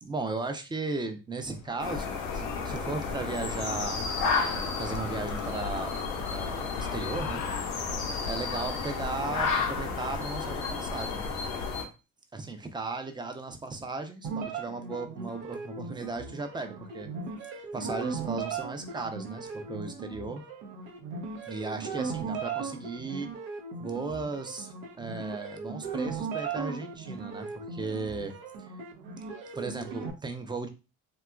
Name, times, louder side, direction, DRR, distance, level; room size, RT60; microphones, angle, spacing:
voice 1, 0.0-4.0 4.8-6.0 6.3-7.4 8.2-11.3 12.3-17.1 17.7-20.4 21.4-23.3 23.8-28.3 28.6-28.7 29.5-30.7, right 3 dB, 10° right, 6 dB, 0.4 m, -36 dB
sound 1, 1.4-10.0, left 6 dB, 45° left, 0.5 m, -48 dB
sound 2, 1.8-11.8, left 5 dB, 85° left, 0.6 m, -32 dB
sound 3, 14.2-30.1, right 5 dB, 75° right, 0.6 m, -37 dB
2.8 x 2.2 x 2.2 m, 0.30 s
hypercardioid pair, 50°, 40 cm